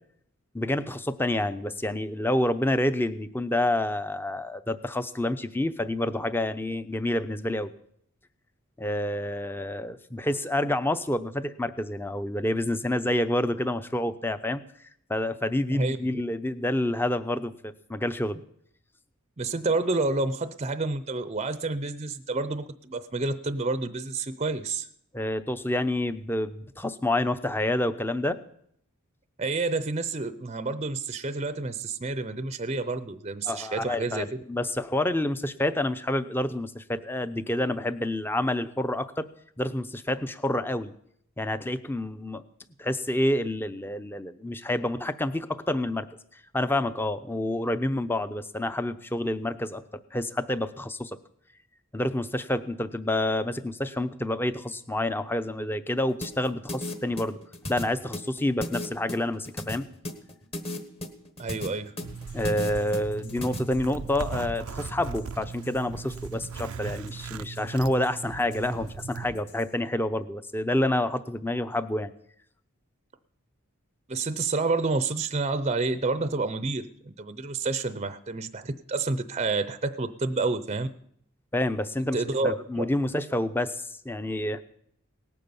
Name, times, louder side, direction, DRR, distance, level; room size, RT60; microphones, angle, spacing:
voice 1, 0.5-7.7 8.8-14.6 15.1-18.4 25.1-28.4 33.5-39.3 39.6-40.9 41.4-42.4 42.8-46.1 46.5-49.8 50.1-51.2 51.9-57.4 57.7-59.8 62.3-72.1 81.5-84.6, left 1 dB, 10° left, 12 dB, 0.6 m, -28 dB
voice 2, 15.7-16.2 19.4-24.9 29.4-34.3 61.4-61.9 74.1-80.9 82.1-82.8, right 3 dB, 30° right, 12 dB, 0.6 m, -29 dB
sound 1, 56.2-63.6, left 1 dB, 25° left, 1.4 m, -35 dB
sound 2, 62.0-69.7, left 1 dB, 50° left, 3.0 m, -47 dB
Zipper (clothing), 62.0-69.3, right 6 dB, 80° right, 0.5 m, -38 dB
18.5 x 9.4 x 7.0 m, 0.69 s
head